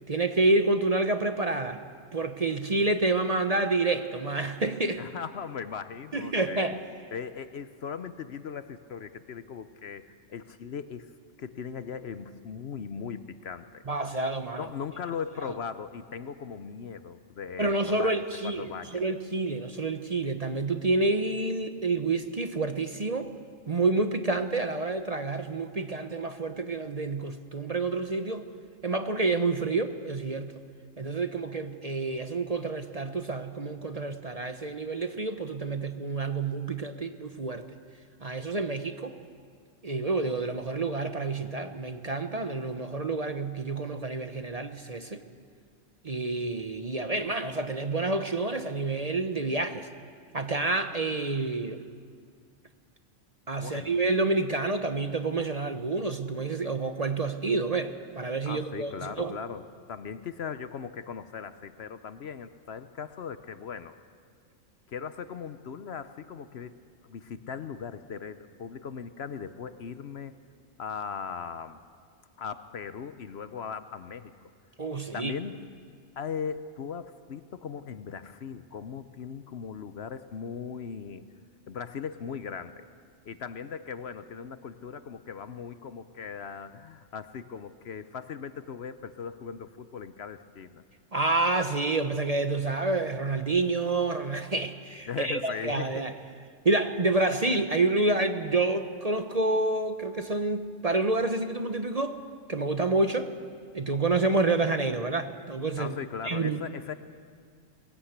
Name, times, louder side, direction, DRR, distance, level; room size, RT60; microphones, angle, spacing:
voice 1, 0.1-1.8 2.1-5.0 6.1-6.7 13.9-14.7 17.6-23.3 23.7-28.5 28.8-30.5 31.0-37.6 38.2-39.1 39.8-45.2 46.0-49.9 50.3-51.9 53.5-59.3 74.8-75.3 91.1-96.1 96.6-102.2 102.5-103.3 103.7-105.9 106.2-106.6, right 3 dB, 35° right, 8 dB, 0.8 m, -28 dB
voice 2, 5.0-6.7 7.1-11.1 11.4-13.8 14.6-19.0 53.6-53.9 58.4-64.0 64.9-66.8 67.0-70.4 70.8-71.8 72.4-74.5 75.1-75.6 76.2-81.2 81.7-82.8 83.3-90.8 95.1-96.0 105.8-106.9, left 6 dB, 60° left, 12 dB, 0.9 m, -38 dB
20.0 x 17.5 x 8.1 m, 2.1 s
omnidirectional pair, 1.3 m